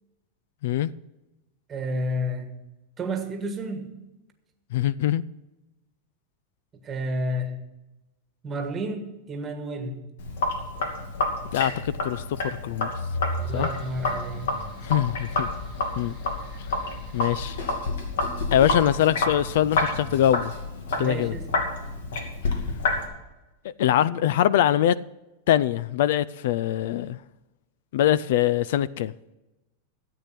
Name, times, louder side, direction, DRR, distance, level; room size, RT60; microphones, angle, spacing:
voice 1, 1.7-2.5 3.0-3.9 6.8-7.6 8.4-10.0 13.3-14.5 14.9-15.1 16.4-16.6 20.9-21.5, equal, 20° right, 1.4 m, -31 dB
voice 2, 4.7-5.2 11.5-12.9 13.5-13.7 14.8-15.5 16.0-16.1 16.7-16.8 17.1-17.6 18.5-20.5 21.0-21.3 23.6-25.0 25.5-27.2 27.9-29.1, left 11 dB, 65° left, 0.4 m, -23 dB
Sink (filling or washing), 10.2-23.1, left 2 dB, 90° left, 2.6 m, -29 dB
sound 1, 13.4-20.6, left 2 dB, 40° left, 2.1 m, -46 dB
13.5 x 8.5 x 5.9 m
supercardioid pair, 165°, 0 cm